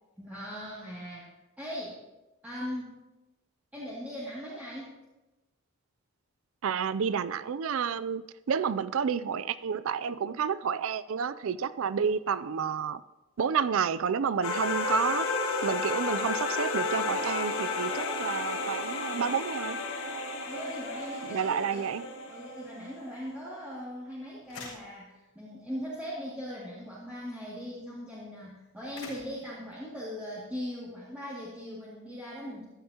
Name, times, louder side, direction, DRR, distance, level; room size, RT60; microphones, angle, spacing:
voice 1, 0.2-1.3 1.6-2.0 2.4-3.0 3.7-4.9 20.4-22.0 22.2-32.6, equal, 5° right, -9 dB, 2.4 m, -39 dB
voice 2, 6.6-8.2 8.5-13.0 13.4-15.3 15.6-19.8 21.3-22.1, right 7 dB, 60° right, 16 dB, 0.4 m, -30 dB
sound 1, 14.4-23.0, left 3 dB, 60° left, 1.7 m, -32 dB
sound 2, 24.4-25.5 25.9-26.1 26.4-27.4 27.8-28.0 28.6-29.8 30.6-30.7, left 4 dB, 85° left, 5.0 m, -47 dB
15.0 x 13.0 x 2.9 m, 1.0 s
head